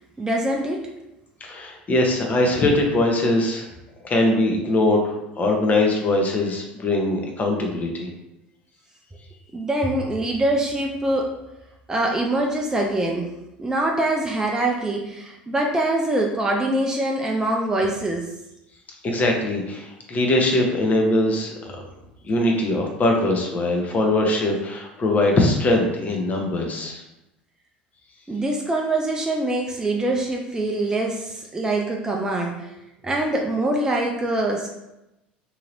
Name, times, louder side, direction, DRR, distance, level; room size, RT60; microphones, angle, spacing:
voice 1, 0.2-0.9 9.5-11.3 11.9-13.3 13.6-18.3 28.3-32.7 33.0-34.7, right 1 dB, 10° right, 0 dB, 0.4 m, -24 dB
voice 2, 1.4-3.7 4.0-8.1 19.0-21.5 22.2-27.0, left 2 dB, 30° left, 1 dB, 0.7 m, -21 dB
2.8 x 2.8 x 2.6 m, 0.92 s
figure-of-eight pair, 70°, 5 cm